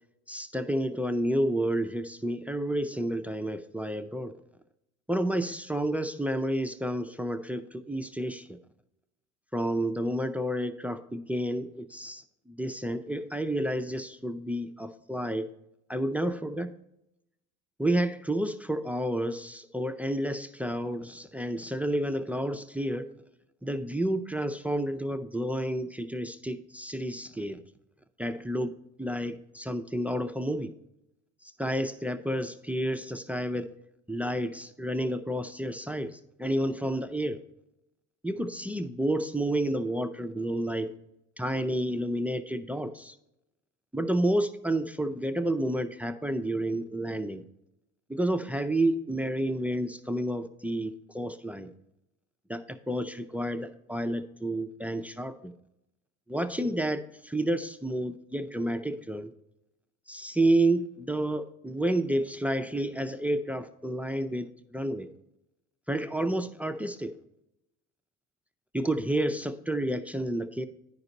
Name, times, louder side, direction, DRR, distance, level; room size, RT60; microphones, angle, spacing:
voice 1, 0.3-4.3 5.1-8.5 9.5-15.5 15.9-16.7 17.8-23.1 23.6-27.6 28.2-28.7 29.0-30.7 31.6-33.7 34.1-37.4 38.2-40.9 41.4-43.1 43.9-47.4 48.1-51.7 52.5-55.5 56.3-59.3 60.1-65.1 65.9-67.1 68.7-70.7, right 1 dB, 5° right, 10 dB, 0.4 m, -30 dB
9.6 x 5.2 x 4.0 m, 0.86 s
supercardioid pair, 85°, 32 cm